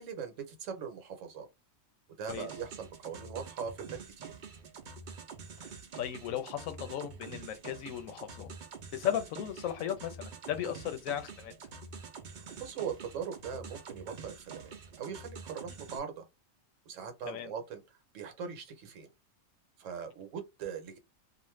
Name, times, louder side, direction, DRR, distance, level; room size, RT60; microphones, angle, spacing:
voice 1, 0.0-1.5 2.2-4.3 10.6-10.7 12.3-16.2 16.9-17.8 18.1-19.1 19.8-21.0, right 7 dB, 70° right, 1.1 m, -41 dB
sound 1, 2.3-16.0, right 5 dB, 55° right, 0.5 m, -47 dB
voice 2, 6.0-8.5 8.9-11.5 17.3-17.5, left 10 dB, 85° left, 1.0 m, -36 dB
2.5 x 2.4 x 3.1 m
omnidirectional pair, 1.4 m